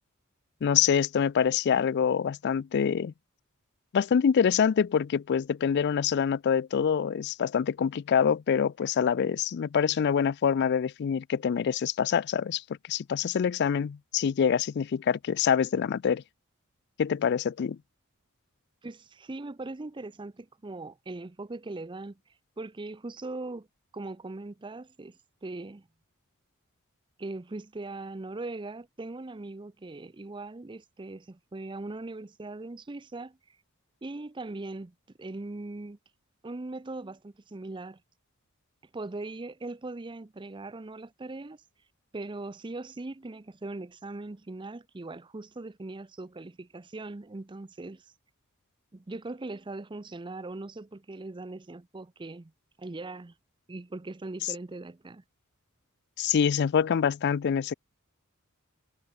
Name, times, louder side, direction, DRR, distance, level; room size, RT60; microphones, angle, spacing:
voice 1, 0.6-3.1 3.9-16.2 17.0-17.8 54.4-54.5 56.2-57.7, left 7 dB, 50° left, 0.3 m, -25 dB
voice 2, 18.8-22.2 22.6-23.7 23.9-25.9 27.2-33.6 34.0-36.0 36.4-38.0 38.9-41.6 42.1-48.1 48.9-52.5 52.8-53.3 53.7-55.2, right 2 dB, 20° right, 0.5 m, -40 dB
head